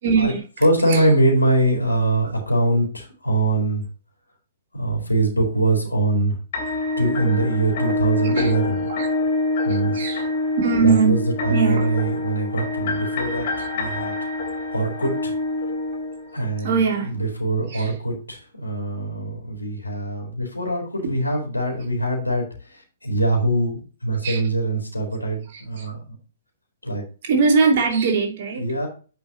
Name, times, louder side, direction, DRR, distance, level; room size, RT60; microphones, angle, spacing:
voice 1, 0.0-1.2 8.2-8.5 8.9-9.1 9.7-10.3 10.6-11.9 13.6-13.7 16.6-17.2 17.7-18.0 21.0-21.1 24.2-24.4 25.5-25.9 27.2-28.7, right 5 dB, 45° right, 2.8 m, -22 dB
voice 2, 0.6-3.8 4.7-6.4 7.0-8.8 9.6-10.1 10.8-14.2 14.7-15.3 16.3-16.8 17.0-22.4 23.0-26.0 26.8-27.0 28.6-28.9, right 2 dB, 85° left, 4.0 m, -23 dB
sound 1, 6.5-16.6, left 2 dB, 45° left, 3.0 m, -26 dB
9.9 x 5.8 x 3.0 m
figure-of-eight pair, 115°, 0 cm